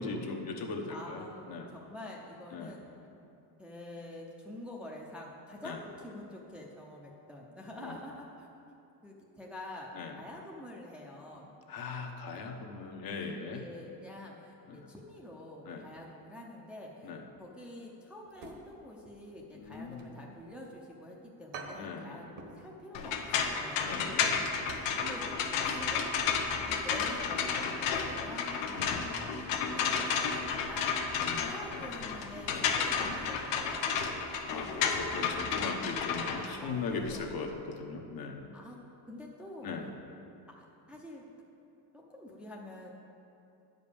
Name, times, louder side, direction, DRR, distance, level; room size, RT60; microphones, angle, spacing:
voice 1, 0.0-1.7 2.5-2.7 5.6-5.8 7.8-8.0 9.9-10.2 11.7-13.6 14.7-14.9 15.6-15.9 17.0-17.2 19.5-20.2 21.8-22.2 23.8-24.3 28.6-29.2 31.1-31.9 32.4-32.7 34.5-38.5 39.6-39.9, left 4 dB, 45° left, 3 dB, 1.0 m, -39 dB
voice 2, 0.9-2.9 3.6-8.8 9.0-9.9 10.2-11.5 13.5-17.1 17.4-24.1 25.0-26.3 26.6-28.9 29.6-31.1 31.4-33.9 34.5-35.0 36.6-36.7 37.1-37.3 38.5-38.8 39.1-39.7 40.6-41.2 41.9-42.9, left 1 dB, ahead, -3 dB, 0.7 m, -47 dB
sound 1, 18.3-19.1 19.4-20.7 21.1-21.2 21.5-22.7 22.9-23.2 23.6-25.0 25.3-25.4 25.9-26.1 26.3-26.4, right 3 dB, 60° right, 1.4 m, -48 dB
sound 2, 22.9-37.1, left 6 dB, 85° left, 1.0 m, -32 dB
9.2 x 5.2 x 7.0 m, 2.8 s
cardioid pair, 135°, 49 cm